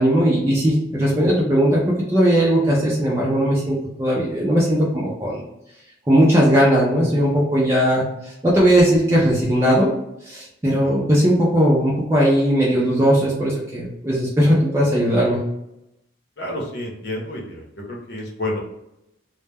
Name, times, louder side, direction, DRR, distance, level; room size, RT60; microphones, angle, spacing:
voice 1, 0.0-5.4 6.1-9.9 10.2-15.4, equal, 15° right, -5 dB, 0.4 m, -18 dB
voice 2, 16.4-18.6, left 1 dB, 65° left, -2 dB, 0.8 m, -30 dB
2.1 x 2.1 x 3.3 m, 0.87 s
head